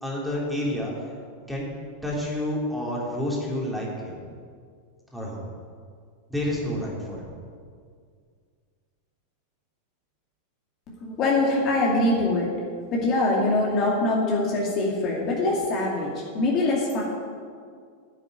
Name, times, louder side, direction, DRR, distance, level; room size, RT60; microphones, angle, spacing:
voice 1, 0.0-0.9 1.5-1.7 2.0-4.2 5.1-5.4 6.3-7.3, left 1 dB, ahead, -5 dB, 3.5 m, -29 dB
voice 2, 10.9-12.5 12.9-17.0, left 2 dB, 35° left, -3 dB, 2.5 m, -23 dB
9.7 x 7.8 x 9.4 m, 2.1 s
figure-of-eight pair, 90°, 0 cm